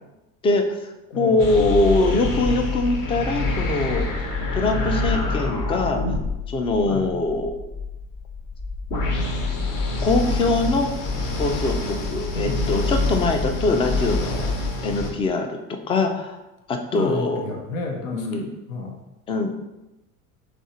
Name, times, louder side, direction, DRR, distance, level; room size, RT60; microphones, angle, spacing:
voice 1, 0.4-4.1 4.5-6.0 6.5-7.5 10.0-10.9 11.4-14.5 14.8-16.4 16.7-17.4 18.1-18.5 19.3-19.6, left 3 dB, 15° left, 5 dB, 0.3 m, -23 dB
voice 2, 1.1-1.6 6.8-7.1 12.3-12.6 16.9-18.9, left 2 dB, 75° left, 2 dB, 0.9 m, -31 dB
sound 1, 1.4-15.1, left 2 dB, 50° left, 1.1 m, -26 dB
3.5 x 3.3 x 4.2 m, 0.98 s
figure-of-eight pair, 70°, 42 cm